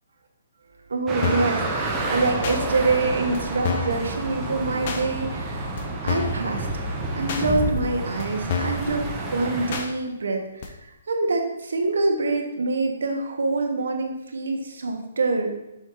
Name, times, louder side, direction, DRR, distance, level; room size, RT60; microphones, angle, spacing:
voice 1, 0.9-5.7 6.0-6.7 7.2-15.5, right 3 dB, 80° right, 3 dB, 1.1 m, -25 dB
sound 1, 1.1-9.8, right 3 dB, 15° right, 0.7 m, -30 dB
sound 2, 1.2-1.6 2.4-2.6 3.3-3.4 3.6-4.0 4.9-5.0 5.8-5.9 6.1-6.4 7.3-7.4 8.2-8.3 8.5-8.8 9.7-9.9 10.6-10.7, left 5 dB, 40° left, 0.7 m, -27 dB
sound 3, 1.8-9.1, left 1 dB, 20° left, 1.2 m, -37 dB
6.1 x 4.2 x 3.8 m, 0.93 s
hypercardioid pair, 165°, 0 cm